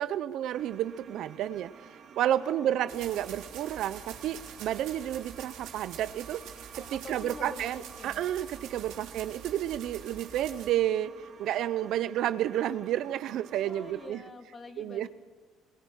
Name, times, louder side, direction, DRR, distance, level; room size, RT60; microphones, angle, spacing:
voice 1, 0.0-1.7 2.2-6.5 6.7-11.1 11.4-14.2 14.8-15.1, right 12 dB, 65° right, 15 dB, 0.6 m, -31 dB
sound 1, 0.5-14.1, right 6 dB, 45° right, 2.1 m, -52 dB
voice 2, 2.3-3.2 6.7-8.3 8.9-9.1 13.7-15.1, left 3 dB, 25° left, 7 dB, 1.8 m, -47 dB
sound 2, 2.9-10.7, right 8 dB, 85° right, 3.5 m, -46 dB
21.0 x 20.0 x 6.5 m, 1.4 s
cardioid pair, 140°, 0 cm